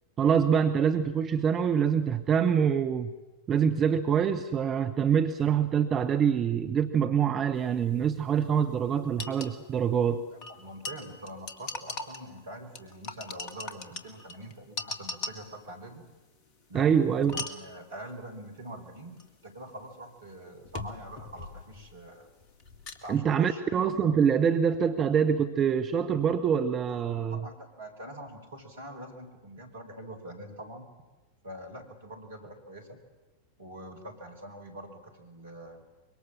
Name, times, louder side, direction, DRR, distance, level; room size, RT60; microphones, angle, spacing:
voice 1, 0.2-3.1 3.5-10.2 16.7-17.4 23.1-27.4, right 7 dB, 25° right, 7 dB, 1.1 m, -25 dB
sound 1, 8.2-8.3 8.4-8.5 9.2-9.5 10.4-12.4 12.7-15.6 17.2-17.7 19.2-19.3 20.6-22.0 22.3-23.2, left 3 dB, 40° left, 2.3 m, -39 dB
voice 2, 10.3-16.0 16.7-22.3 23.0-23.6 26.9-27.0 27.3-30.9 31.4-33.0 33.6-35.8, right 1 dB, 65° right, 6 dB, 4.8 m, -44 dB
25.0 x 23.0 x 7.5 m, 1.1 s
figure-of-eight pair, 90°, 0 cm